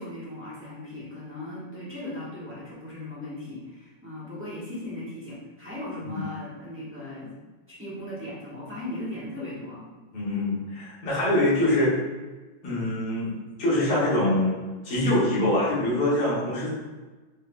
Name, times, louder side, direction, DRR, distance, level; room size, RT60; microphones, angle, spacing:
voice 1, 0.0-7.3 7.7-9.9, left 1 dB, 10° right, -9 dB, 0.8 m, -37 dB
voice 2, 10.1-12.0 12.6-14.6 14.8-16.7, left 1 dB, 80° left, -8 dB, 2.4 m, -24 dB
5.4 x 3.9 x 2.2 m, 1.2 s
omnidirectional pair, 2.4 m